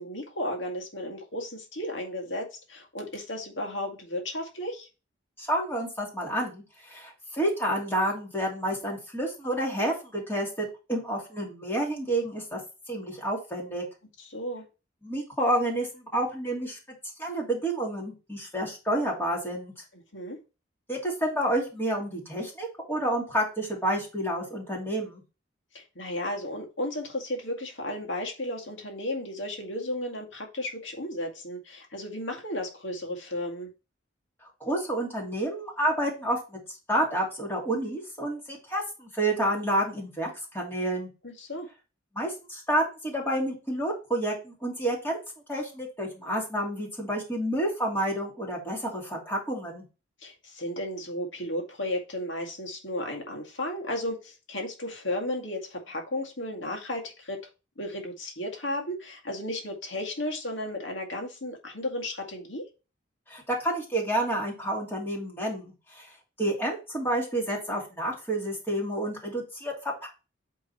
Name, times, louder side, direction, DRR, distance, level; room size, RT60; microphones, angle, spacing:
voice 1, 0.0-4.9 14.2-14.7 20.1-20.4 25.7-33.7 41.2-41.7 50.2-57.5 57.8-62.6, left 1 dB, 75° left, 2 dB, 2.0 m, -34 dB
voice 2, 5.4-12.6 12.9-13.8 15.0-16.8 17.2-19.7 20.9-25.2 34.6-36.6 36.9-41.1 42.1-45.2 45.5-49.8 63.3-66.1 66.4-70.1, right 1 dB, 10° left, -3 dB, 2.7 m, -29 dB
8.5 x 3.8 x 4.2 m, 0.31 s
head